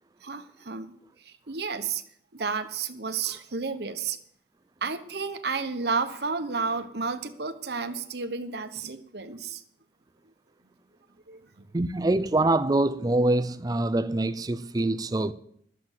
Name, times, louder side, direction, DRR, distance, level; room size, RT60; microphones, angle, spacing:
voice 1, 0.2-0.9 1.2-2.0 2.3-4.2 4.8-9.6 11.3-11.4, right 5 dB, 60° right, 1.0 m, -31 dB
voice 2, 11.7-15.3, right 2 dB, 20° right, 0.4 m, -24 dB
12.0 x 7.6 x 7.3 m
head